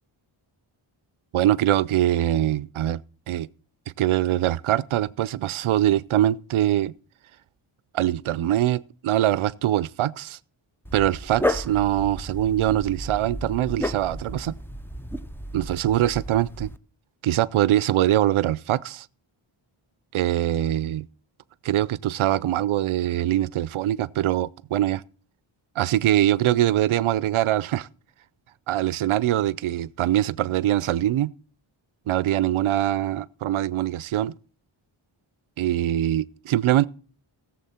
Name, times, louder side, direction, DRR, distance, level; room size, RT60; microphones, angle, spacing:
voice 1, 1.3-3.0 3.3-3.5 4.0-6.9 7.9-10.4 10.9-14.6 15.5-16.7 17.2-19.1 20.1-21.1 21.6-25.0 25.8-27.9 28.7-31.3 32.1-34.3 35.6-36.9, right 13 dB, 75° right, 0.5 m, -23 dB
Dog, 10.9-16.8, left 1 dB, 5° left, 0.6 m, -32 dB
16.5 x 7.3 x 4.2 m
wide cardioid pair, 100°, 50 cm